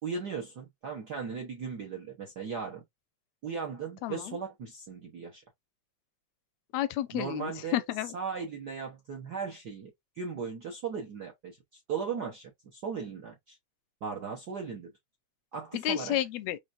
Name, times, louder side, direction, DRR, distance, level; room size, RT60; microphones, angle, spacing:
voice 1, 0.0-2.8 3.4-5.4 7.1-7.8 8.1-13.6 14.0-14.9 15.5-16.2, right 6 dB, 85° right, 0.8 m, -37 dB
voice 2, 4.0-4.4 6.7-8.1 15.7-16.6, left 12 dB, 80° left, 1.6 m, -31 dB
5.9 x 3.2 x 2.5 m
omnidirectional pair, 3.4 m